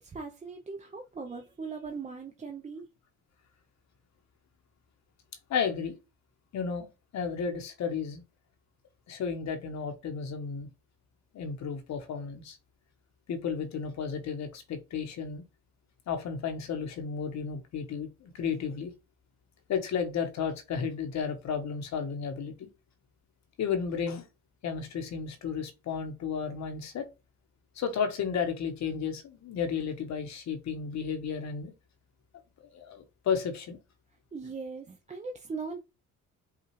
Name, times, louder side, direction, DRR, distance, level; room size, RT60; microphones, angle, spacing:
voice 1, 0.0-2.9 34.3-35.8, right 4 dB, 25° right, 0.5 m, -39 dB
voice 2, 5.5-5.9 6.5-6.9 7.1-8.2 9.1-10.7 11.3-12.6 13.3-15.4 16.1-18.9 19.7-22.7 23.6-24.3 24.6-27.1 27.8-31.7 32.7-33.8, left 6 dB, 65° left, 1.0 m, -33 dB
5.7 x 2.4 x 3.0 m
cardioid pair, 90°, 30 cm